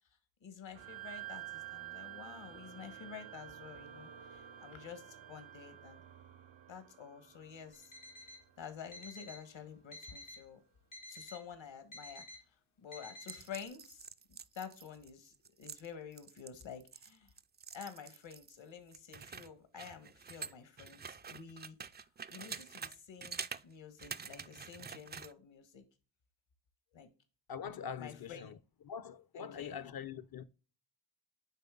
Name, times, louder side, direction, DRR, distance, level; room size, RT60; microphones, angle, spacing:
voice 1, 0.4-6.0 6.7-7.9 8.6-10.6 11.1-17.3 17.7-25.8 26.9-27.1 28.0-28.4 29.6-29.8, left 7 dB, 70° left, 1.6 m, -50 dB
sound 1, 0.7-9.5, right 13 dB, 75° right, 0.8 m, -51 dB
Alarm, 7.7-8.4 8.9-9.4 9.9-10.4 10.9-11.4 11.9-12.4 12.9-13.4, left 1 dB, 90° left, 1.9 m, -51 dB
sound 2, 13.2-18.6 18.9-23.0 23.2-23.6 24.0-25.3, right 6 dB, 25° right, 0.3 m, -47 dB
voice 2, 27.5-28.6 28.8-30.4, left 7 dB, 50° left, 0.7 m, -43 dB
9.2 x 3.4 x 3.7 m
cardioid pair, 60°, 48 cm